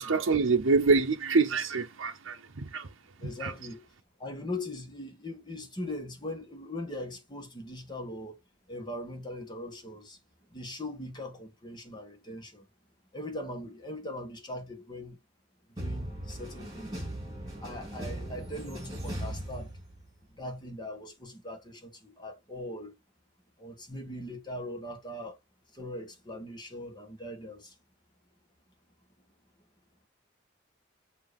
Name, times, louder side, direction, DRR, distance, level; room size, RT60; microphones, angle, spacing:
voice 1, 0.0-2.9 3.2-3.5, right 4 dB, 85° right, 0.7 m, -26 dB
voice 2, 3.2-3.9 4.2-8.4 8.7-10.2 10.5-12.7 13.1-15.2 15.8-17.0 17.6-19.7 20.3-23.0 23.6-25.4 25.7-27.7, left 1 dB, 20° left, 1.5 m, -40 dB
sound 1, 15.8-20.2, right 1 dB, 20° right, 3.5 m, -38 dB
7.5 x 2.8 x 5.1 m
head